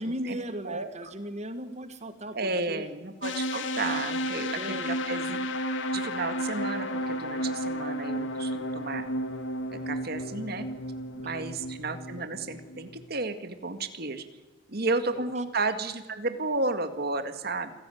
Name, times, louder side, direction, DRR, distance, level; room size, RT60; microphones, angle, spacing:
voice 1, 0.0-2.9 4.6-4.9 11.2-11.4 15.1-15.4, equal, 35° right, 9 dB, 1.6 m, -37 dB
voice 2, 2.3-5.4 5.9-9.1 9.7-10.7 11.2-14.2 14.7-17.7, right 3 dB, 50° right, 8 dB, 2.1 m, -32 dB
sound 1, 3.2-13.0, equal, 70° left, 2.6 m, -33 dB
27.0 x 17.0 x 9.3 m, 1.1 s
head